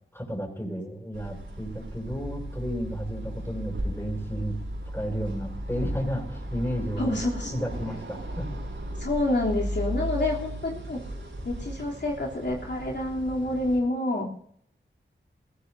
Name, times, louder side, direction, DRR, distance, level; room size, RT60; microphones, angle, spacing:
voice 1, 0.1-4.6 4.9-7.2 7.5-8.4, equal, 10° left, 0 dB, 6.7 m, -32 dB
sound 1, 1.1-13.8, right 1 dB, 85° right, 6.0 m, -35 dB
voice 2, 7.0-7.5 9.0-11.0 11.4-14.3, left 2 dB, 65° left, -3 dB, 3.4 m, -28 dB
20.5 x 15.5 x 2.8 m, 0.66 s
cardioid pair, 50°, 20 cm